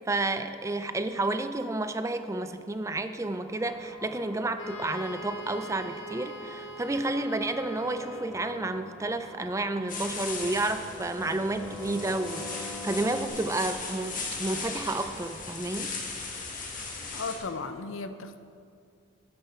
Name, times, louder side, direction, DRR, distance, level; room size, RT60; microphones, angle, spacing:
voice 1, 0.1-15.9, right 2 dB, 15° right, 9 dB, 0.4 m, -31 dB
sound 1, 3.5-13.3, left 1 dB, 10° left, 1.4 m, -45 dB
Wind instrument woodwind instrument, 4.6-8.6, left 1 dB, 70° left, 1.6 m, -43 dB
sound 2, 9.9-17.4, left 4 dB, 40° left, 1.7 m, -37 dB
voice 2, 17.1-18.4, left 4 dB, 85° left, 10 dB, 0.7 m, -35 dB
12.5 x 9.6 x 4.4 m, 2.4 s
head